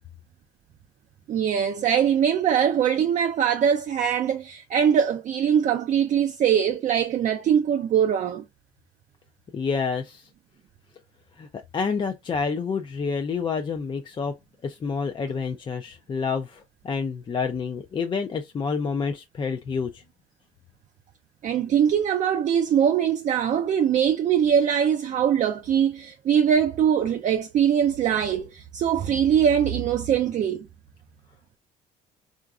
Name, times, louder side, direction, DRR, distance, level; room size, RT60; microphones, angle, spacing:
voice 1, 1.3-8.4 21.4-30.7, right 8 dB, 45° right, 0.4 m, -22 dB
voice 2, 9.5-10.3 11.4-11.5 11.7-14.4 14.6-20.0, left 5 dB, 30° left, 0.4 m, -28 dB
3.8 x 2.5 x 2.3 m
cardioid pair, 110°, 17 cm